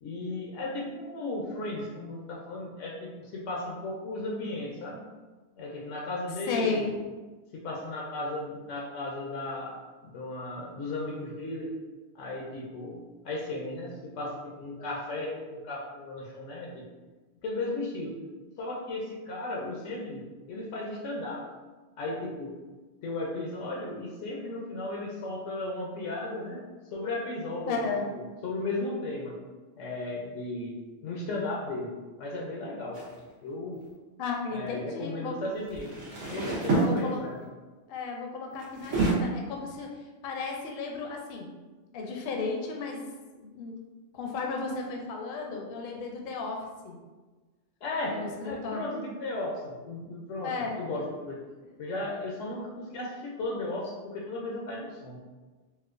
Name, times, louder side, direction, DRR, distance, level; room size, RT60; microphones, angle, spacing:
voice 1, 0.0-5.1 5.6-6.8 7.5-9.8 10.0-11.7 12.1-16.8 17.4-18.2 18.6-21.5 22.0-22.5 23.0-27.9 28.1-29.4 29.8-33.8 34.5-36.0 36.2-37.4 47.8-51.4 51.8-55.2, left 2 dB, 85° left, -2 dB, 1.0 m, -35 dB
voice 2, 6.5-6.9 27.7-28.0 34.2-35.3 36.8-37.2 37.9-41.5 41.9-43.0 43.3-43.8 44.1-47.0 48.1-48.8 50.4-50.8, left 4 dB, 60° left, 1 dB, 0.7 m, -34 dB
sound 1, 32.9-33.2 35.6-37.4 38.6-39.1, right 3 dB, 90° right, 1.2 m, -28 dB
4.3 x 2.1 x 2.4 m, 1.3 s
omnidirectional pair, 1.2 m